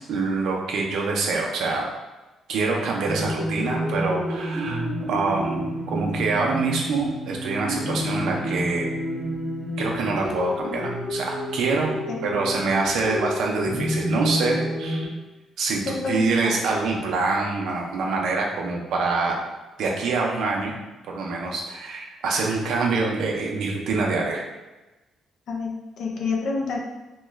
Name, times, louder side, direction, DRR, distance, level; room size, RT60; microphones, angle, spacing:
voice 1, 0.1-1.9 2.5-8.8 9.8-11.9 12.2-15.1 15.6-19.4 19.8-20.7 21.0-24.4, right 3 dB, 75° right, -1 dB, 0.6 m, -25 dB
sound 1, 3.0-15.0, equal, 15° right, 1.2 m, -29 dB
voice 2, 15.9-16.5 25.5-26.8, left 4 dB, 65° left, -1 dB, 0.6 m, -28 dB
3.0 x 2.3 x 3.2 m, 1.1 s
cardioid pair, 90°, 0 cm